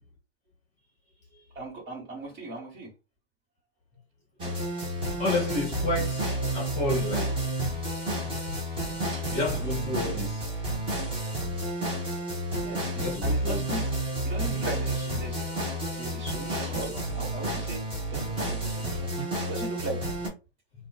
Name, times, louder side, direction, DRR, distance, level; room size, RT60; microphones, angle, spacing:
voice 1, 1.5-2.9 12.6-12.9 13.2-13.8 14.2-15.4 15.9-19.1 19.5-20.0, right 2 dB, 35° right, 1.4 m, -38 dB
sound 1, 4.4-20.3, right 1 dB, 15° right, 0.8 m, -30 dB
voice 2, 5.2-6.2 6.5-7.3 8.5-8.6 9.3-10.4 12.9-13.8, left 2 dB, 20° left, 0.9 m, -30 dB
2.4 x 2.3 x 2.3 m
hypercardioid pair, 120°, 37 cm